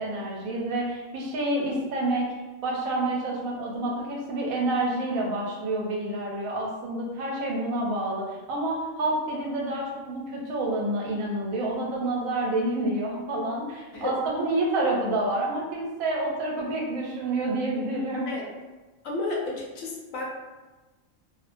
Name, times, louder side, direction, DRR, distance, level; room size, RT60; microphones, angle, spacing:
voice 1, 0.0-2.3 2.6-18.3, right 2 dB, 85° right, -2 dB, 1.0 m, -28 dB
voice 2, 19.0-20.2, left 2 dB, 75° left, -2 dB, 1.0 m, -31 dB
2.4 x 2.1 x 2.5 m, 1.2 s
omnidirectional pair, 1.4 m